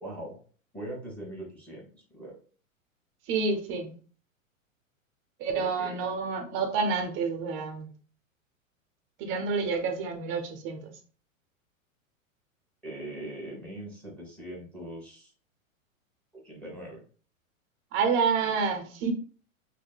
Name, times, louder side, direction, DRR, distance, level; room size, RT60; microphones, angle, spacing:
voice 1, 0.0-0.4 0.7-2.3 5.5-5.9 12.8-15.3 16.4-17.0, right 1 dB, 5° left, 1.1 m, -41 dB
voice 2, 3.3-4.0 5.4-7.9 9.2-10.9 17.9-19.1, right 5 dB, 30° right, 0.6 m, -28 dB
3.5 x 2.2 x 2.2 m
hypercardioid pair, 105°, 41 cm